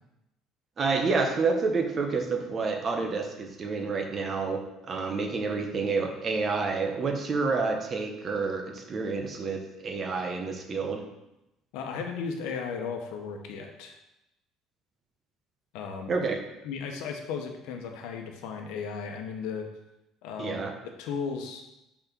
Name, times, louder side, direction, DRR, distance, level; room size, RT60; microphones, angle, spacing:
voice 1, 0.8-11.0 16.1-16.4 20.4-20.7, right 4 dB, 25° right, 4 dB, 0.9 m, -29 dB
voice 2, 11.7-13.9 15.7-16.3 16.6-19.7 20.2-20.6 20.8-21.6, left 5 dB, 85° left, 3 dB, 1.1 m, -35 dB
6.0 x 4.3 x 6.0 m, 0.90 s
cardioid pair, 165°, 0 cm